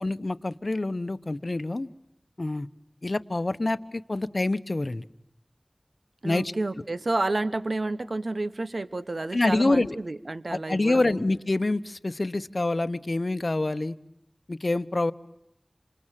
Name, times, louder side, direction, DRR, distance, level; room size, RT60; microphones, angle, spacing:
voice 1, 0.0-1.9 2.4-2.7 3.0-5.0 6.2-6.5 9.3-10.0 10.5-13.9 14.5-15.1, left 2 dB, 65° left, 13 dB, 1.0 m, -26 dB
voice 2, 6.2-11.2, right 2 dB, 80° right, 13 dB, 1.1 m, -30 dB
27.5 x 27.5 x 7.5 m, 0.82 s
wide cardioid pair, 45°, 0 cm